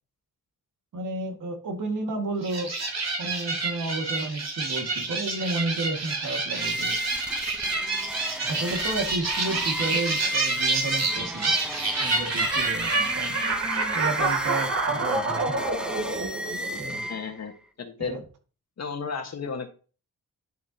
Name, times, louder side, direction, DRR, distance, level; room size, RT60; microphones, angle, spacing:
voice 1, 0.9-2.7 3.2-6.9 8.4-11.6 12.0-13.4 13.9-15.6 16.8-17.1 18.0-18.2, right 2 dB, 70° right, 3 dB, 2.0 m, -32 dB
sound 1, 2.4-17.1, right 3 dB, 55° right, 2.8 m, -28 dB
sound 2, 6.5-17.5, equal, 5° right, 0.7 m, -34 dB
voice 2, 17.1-17.5 17.8-18.2 18.8-19.7, left 5 dB, 50° left, 6 dB, 1.4 m, -33 dB
10.5 x 6.6 x 2.9 m, 0.37 s
cardioid pair, 100°, 33 cm